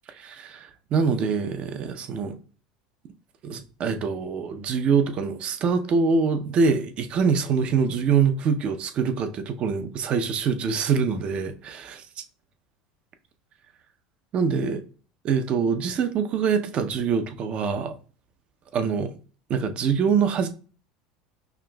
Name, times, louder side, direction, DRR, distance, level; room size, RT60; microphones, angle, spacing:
voice 1, 0.1-2.4 3.4-12.0 14.3-14.8 15.2-17.9 18.7-19.1 19.5-20.5, right 5 dB, 45° right, 0.5 m, -24 dB
5.7 x 2.5 x 2.2 m
supercardioid pair, 100°, 3 cm